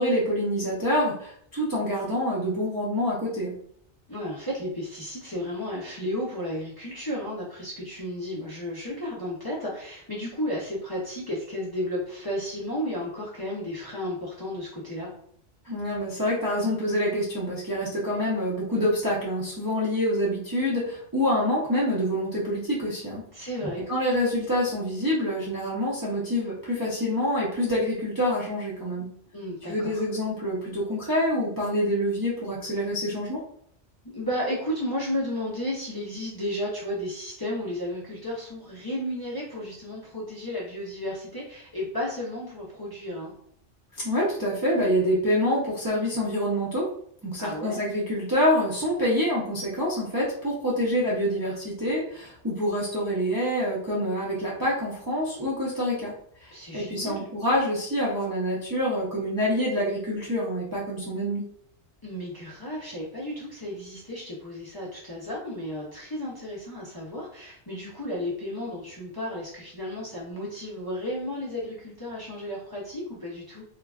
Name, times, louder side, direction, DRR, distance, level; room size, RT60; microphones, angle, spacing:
voice 1, 0.0-3.5 15.6-23.5 23.9-29.1 29.7-33.4 44.0-46.9 47.2-56.1 56.4-61.4, equal, 30° right, -6 dB, 0.4 m, -26 dB
voice 2, 4.1-15.1 23.3-23.8 29.3-30.0 34.0-43.3 47.4-47.8 56.5-57.3 62.0-73.6, left 1 dB, 30° left, -5 dB, 0.5 m, -33 dB
3.1 x 2.2 x 2.3 m, 0.66 s
omnidirectional pair, 1.2 m